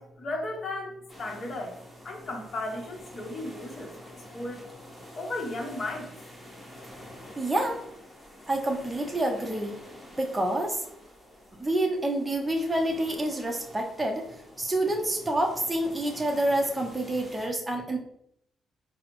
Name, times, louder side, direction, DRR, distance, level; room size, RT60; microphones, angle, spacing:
voice 1, 0.0-1.8 2.0-3.9 4.3-4.6 5.1-6.1, left 2 dB, 45° left, 2 dB, 0.8 m, -35 dB
sound 1, 1.1-17.5, left 1 dB, 5° left, 1.2 m, -48 dB
voice 2, 7.4-7.8 8.5-9.7 10.2-10.8 11.6-14.2 14.6-18.0, right 1 dB, 15° right, 0 dB, 0.6 m, -28 dB
4.7 x 2.0 x 3.0 m, 0.72 s
cardioid pair, 90°, 0 cm